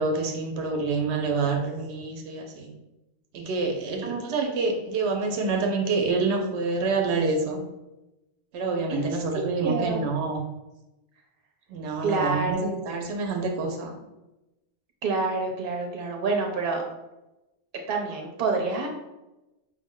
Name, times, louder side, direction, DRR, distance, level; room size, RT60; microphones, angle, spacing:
voice 1, 0.0-2.7 3.3-7.6 8.5-10.5 11.7-13.9, right 3 dB, 90° right, 3 dB, 0.9 m, -27 dB
voice 2, 4.0-4.5 8.9-10.1 12.0-13.0 15.0-16.8 17.9-18.9, right 3 dB, 60° right, 1 dB, 0.9 m, -28 dB
5.0 x 2.1 x 3.6 m, 0.99 s
omnidirectional pair, 1.1 m